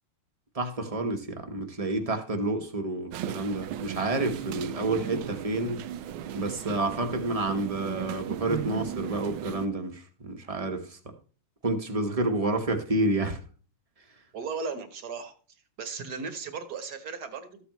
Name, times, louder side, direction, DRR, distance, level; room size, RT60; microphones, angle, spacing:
voice 1, 0.5-5.8 6.3-11.1 11.6-13.4, right 2 dB, 20° right, 1.0 m, -29 dB
sound 1, 3.1-9.7, right 10 dB, 75° right, 1.4 m, -36 dB
voice 2, 14.3-15.3 15.8-17.7, right 5 dB, 50° right, 1.6 m, -36 dB
13.5 x 8.3 x 3.1 m
omnidirectional pair, 2.4 m